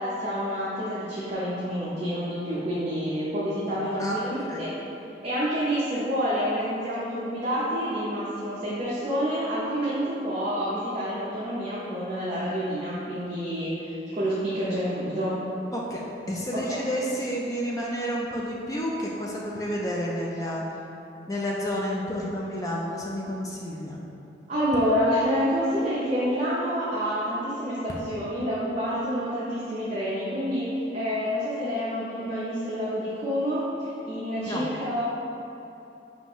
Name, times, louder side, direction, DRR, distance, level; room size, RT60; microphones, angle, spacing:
voice 1, 0.0-4.7 5.2-15.4 16.7-16.8 24.5-35.0, equal, 40° right, -10 dB, 0.6 m, -28 dB
voice 2, 4.0-4.7 15.7-20.6 21.3-24.0 34.4-34.7, equal, 20° left, -3 dB, 0.3 m, -30 dB
5.5 x 2.5 x 3.0 m, 2.8 s
head